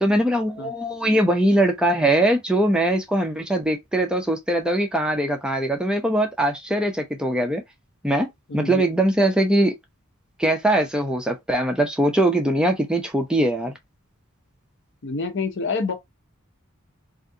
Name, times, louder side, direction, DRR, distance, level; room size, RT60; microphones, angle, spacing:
voice 1, 0.0-7.6 8.0-8.3 8.5-9.7 10.4-13.8, right 1 dB, 5° right, 0.5 m, -21 dB
voice 2, 8.5-8.8 15.0-15.9, left 4 dB, 60° left, 0.7 m, -27 dB
3.4 x 2.5 x 2.6 m
head